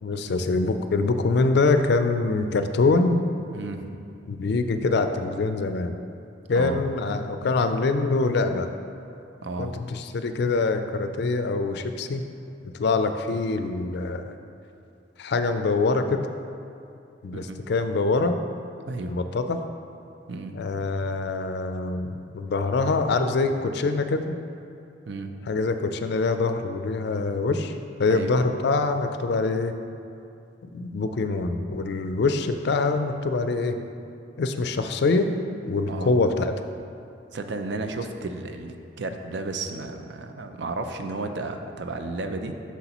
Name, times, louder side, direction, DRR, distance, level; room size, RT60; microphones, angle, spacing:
voice 1, 0.0-3.3 4.3-6.0 6.5-8.7 9.6-12.2 12.6-14.3 15.2-16.3 17.2-18.4 19.0-19.6 20.5-24.3 25.5-29.8 30.7-33.8 34.4-35.3 35.6-36.6, left 3 dB, 60° left, 8 dB, 0.4 m, -24 dB
voice 2, 3.5-4.0 6.5-6.8 9.4-9.7 17.5-17.6 18.9-19.1 20.3-20.6 25.1-25.4 28.1-28.3 35.9-36.1 37.3-42.5, right 3 dB, 65° right, 6 dB, 0.5 m, -33 dB
8.0 x 6.0 x 3.0 m, 2.6 s
head